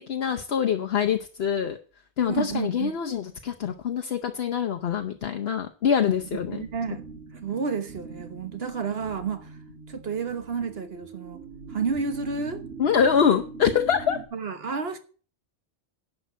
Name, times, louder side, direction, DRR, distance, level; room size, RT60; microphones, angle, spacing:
voice 1, 0.1-1.8 2.2-6.6 12.8-14.2, left 7 dB, 65° left, 1.1 m, -24 dB
voice 2, 2.3-3.0 6.5-9.6 9.9-11.4 11.7-12.7 14.3-15.0, right 5 dB, 60° right, 1.5 m, -31 dB
sound 1, 5.9-14.2, right 4 dB, 90° right, 2.8 m, -42 dB
11.0 x 6.0 x 8.0 m
omnidirectional pair, 1.2 m